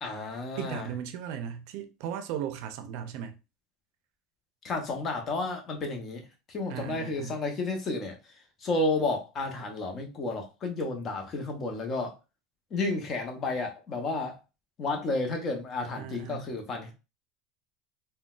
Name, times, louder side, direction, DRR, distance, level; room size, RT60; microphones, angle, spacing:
voice 1, 0.0-0.9 4.6-8.2 8.6-12.1 12.7-14.4 14.8-16.9, left 2 dB, 35° left, 0.8 m, -31 dB
voice 2, 0.6-3.4 6.7-7.4 16.0-16.5, right 9 dB, 65° right, 0.5 m, -36 dB
3.8 x 2.2 x 2.4 m
supercardioid pair, 135°, 0 cm